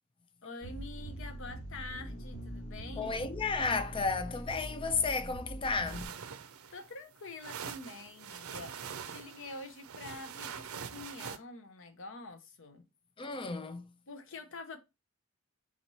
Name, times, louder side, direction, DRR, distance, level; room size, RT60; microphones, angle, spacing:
voice 1, 0.4-3.3 6.7-12.9 14.1-14.8, left 3 dB, 65° left, 0.8 m, -46 dB
sound 1, 0.6-6.1, right 1 dB, 80° left, 1.3 m, -43 dB
voice 2, 3.0-6.1 13.2-13.9, left 4 dB, 25° left, 0.4 m, -33 dB
sound 2, 5.9-11.4, right 7 dB, 80° right, 0.5 m, -44 dB
4.2 x 3.1 x 4.0 m
head